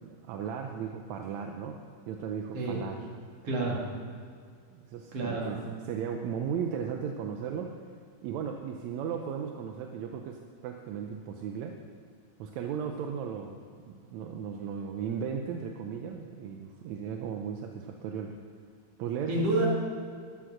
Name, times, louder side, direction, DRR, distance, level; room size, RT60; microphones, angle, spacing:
voice 1, 0.0-1.8 2.1-3.0 4.7-7.8 8.2-11.8 12.4-13.6 13.9-18.3 19.0-19.7, right 7 dB, 75° right, 4 dB, 1.8 m, -36 dB
voice 2, 3.4-3.8 5.1-5.5 19.3-19.7, right 2 dB, 50° right, -2 dB, 2.9 m, -28 dB
12.0 x 9.3 x 6.4 m, 2.1 s
omnidirectional pair, 3.7 m